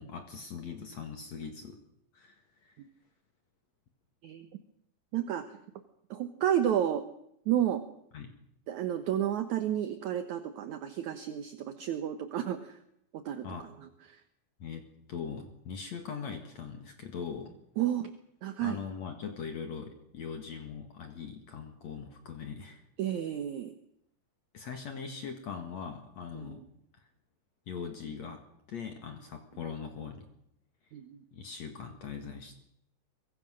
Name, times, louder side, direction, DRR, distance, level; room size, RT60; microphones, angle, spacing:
voice 1, 0.0-1.8 2.1-2.7 8.1-8.3 13.4-13.7 14.6-17.5 18.6-22.8 24.5-26.6 27.7-28.4 28.7-30.3 31.3-32.6, left 6 dB, 55° left, 5 dB, 2.8 m, -41 dB
voice 2, 5.1-5.4 6.1-7.0 7.5-7.8 8.7-12.8 13.1-13.5 17.8-18.1 18.4-18.8 23.0-23.7 26.4-26.5 30.9-31.2, right 10 dB, 65° right, 9 dB, 2.2 m, -31 dB
23.5 x 23.5 x 6.4 m, 0.76 s
omnidirectional pair, 4.1 m